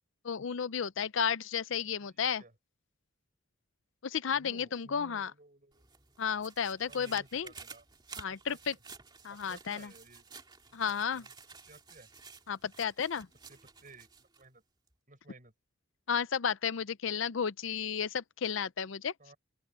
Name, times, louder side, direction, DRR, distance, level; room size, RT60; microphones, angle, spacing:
voice 1, 0.2-2.4 4.0-5.3 6.2-7.5 8.2-8.7 9.2-9.9 10.7-11.2 12.5-13.3 16.1-19.1, left 7 dB, 65° left, 0.5 m, -33 dB
voice 2, 2.0-2.5 4.3-5.9 6.9-7.9 8.3-8.8 9.3-10.2 10.9-11.3 11.7-12.1 13.5-14.6 15.1-15.5 19.2-19.4, right 2 dB, 40° right, 7.2 m, -57 dB
sound 1, 5.7-14.4 14.9-15.0, right 5 dB, 20° right, 2.5 m, -52 dB
open air
head